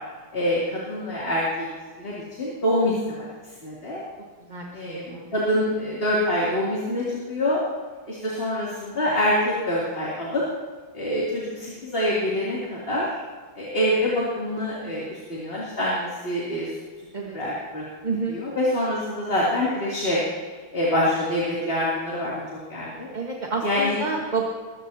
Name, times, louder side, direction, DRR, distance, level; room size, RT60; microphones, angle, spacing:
voice 1, 0.3-1.5 2.0-3.3 3.6-4.0 4.7-7.6 8.1-10.4 10.9-13.1 13.5-16.7 17.3-17.8 18.3-20.2 20.7-22.3 22.7-23.1 23.6-24.0, left 1 dB, 25° left, -6 dB, 3.2 m, -25 dB
voice 2, 4.5-5.3 17.1-17.4 18.0-18.4 23.1-24.5, right 4 dB, 25° right, -2 dB, 1.5 m, -29 dB
22.0 x 15.5 x 2.9 m, 1.5 s
omnidirectional pair, 2.3 m